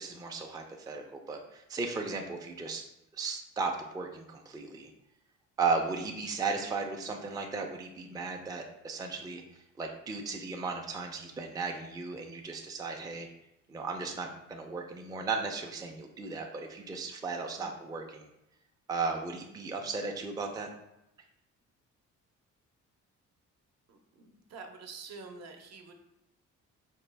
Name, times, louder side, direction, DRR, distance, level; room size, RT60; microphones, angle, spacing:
voice 1, 0.0-2.8 3.1-4.9 5.6-9.4 9.8-13.3 13.7-18.3 18.9-20.7, right 4 dB, 15° right, 2 dB, 0.4 m, -35 dB
voice 2, 23.9-25.9, right 4 dB, 60° right, 4 dB, 0.7 m, -47 dB
4.3 x 2.2 x 3.2 m, 0.87 s
cardioid pair, 90°, 30 cm